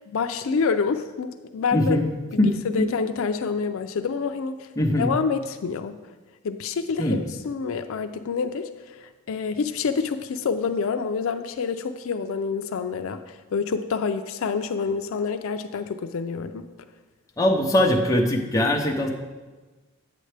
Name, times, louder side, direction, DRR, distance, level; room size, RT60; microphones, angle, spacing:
voice 1, 0.0-2.0 2.3-4.7 5.0-6.0 6.4-8.7 9.0-16.7, left 5 dB, 70° left, 8 dB, 0.4 m, -27 dB
voice 2, 1.7-2.1 2.4-2.9 4.8-5.1 7.0-7.2 17.4-19.1, left 1 dB, 15° left, 1 dB, 0.7 m, -21 dB
8.5 x 7.6 x 3.3 m, 1.3 s
head